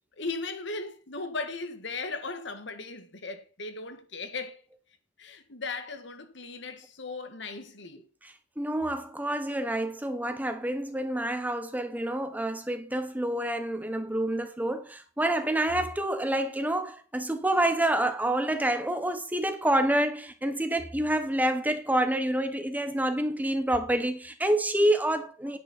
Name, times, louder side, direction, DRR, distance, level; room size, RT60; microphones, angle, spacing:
voice 1, 0.2-4.6 5.2-8.0, left 3 dB, 70° left, 1.7 m, -37 dB
voice 2, 8.2-25.6, right 1 dB, 10° right, 1.3 m, -28 dB
9.9 x 9.4 x 4.3 m
head